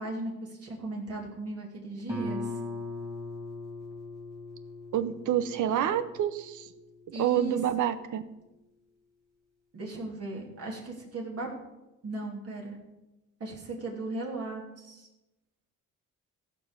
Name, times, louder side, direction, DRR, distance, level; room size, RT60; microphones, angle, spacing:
voice 1, 0.0-2.5 7.1-7.6 9.7-11.5 12.0-12.8 13.4-15.1, right 2 dB, 50° right, -2 dB, 3.2 m, -36 dB
Guitar, 2.1-7.5, left 2 dB, 10° right, 2.7 m, -40 dB
voice 2, 4.9-6.7 7.2-8.2, right 10 dB, 80° right, 12 dB, 0.9 m, -28 dB
15.0 x 5.5 x 6.7 m, 0.99 s
cardioid pair, 90°, 30 cm